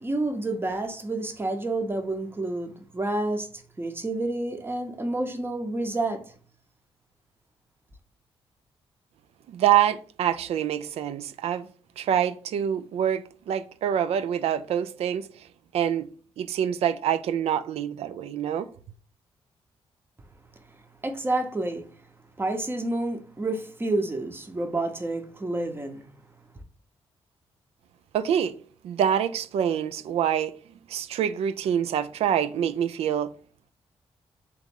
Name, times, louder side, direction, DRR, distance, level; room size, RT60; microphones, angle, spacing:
voice 1, 0.0-6.3 21.0-21.9 22.4-26.1, right 2 dB, 20° right, 0.7 m, -29 dB
voice 2, 9.5-11.7 12.0-15.5 15.7-16.1 16.4-18.7 28.1-28.5 28.8-30.5 30.9-33.3, right 9 dB, 85° right, 0.4 m, -26 dB
3.6 x 3.0 x 3.6 m
cardioid pair, 95°, 10 cm